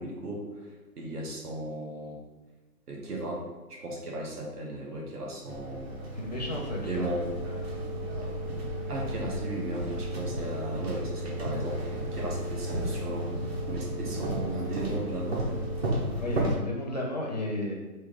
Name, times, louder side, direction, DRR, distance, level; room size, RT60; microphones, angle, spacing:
voice 1, 0.0-2.2 2.9-6.2 6.8-7.3 8.2-8.3 8.9-13.3 13.7-15.5, right 1 dB, 75° right, -2 dB, 1.5 m, -36 dB
sound 1, 5.5-16.6, right 1 dB, 40° right, 0.9 m, -33 dB
voice 2, 6.2-7.1 16.2-17.7, left 1 dB, 30° left, -2 dB, 0.4 m, -33 dB
sound 2, 6.4-15.9, right 3 dB, 15° right, 0.8 m, -42 dB
4.5 x 3.0 x 3.4 m, 1.2 s
hypercardioid pair, 165°, 46 cm